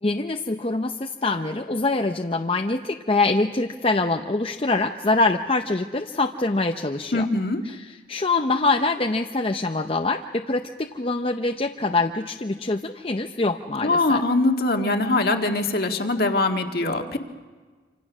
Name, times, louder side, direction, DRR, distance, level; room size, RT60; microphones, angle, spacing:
voice 1, 0.0-7.3 7.6-14.2, left 3 dB, 30° left, 4 dB, 0.6 m, -24 dB
voice 2, 7.1-7.6 13.8-17.2, left 2 dB, 55° left, 4 dB, 1.7 m, -22 dB
26.5 x 26.0 x 6.2 m, 1.4 s
head